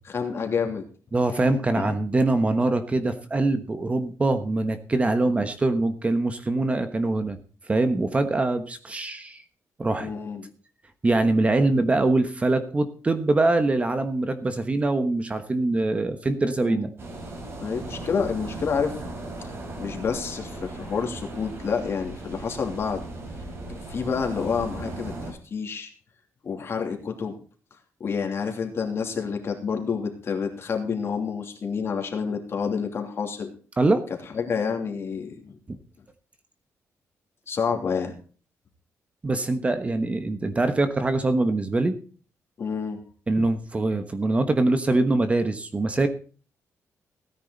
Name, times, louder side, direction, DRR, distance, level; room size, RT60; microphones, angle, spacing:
voice 1, 0.0-0.8 1.3-1.9 5.1-5.3 10.0-10.5 16.6-16.9 17.6-19.0 19.4-19.5 19.8-23.0 23.9-25.9 26.4-27.3 28.0-33.5 34.3-35.6 37.5-38.1 42.6-43.0, left 6 dB, 45° left, 3 dB, 3.0 m, -29 dB
voice 2, 1.1-7.4 7.7-9.4 9.8-10.1 11.0-16.9 33.8-34.0 39.2-41.9 43.3-46.1, right 2 dB, 20° right, 9 dB, 1.2 m, -23 dB
sound 1, 17.0-25.3, right 2 dB, 40° right, 4.7 m, -37 dB
17.0 x 10.0 x 4.0 m, 0.39 s
cardioid pair, 140°, 6 cm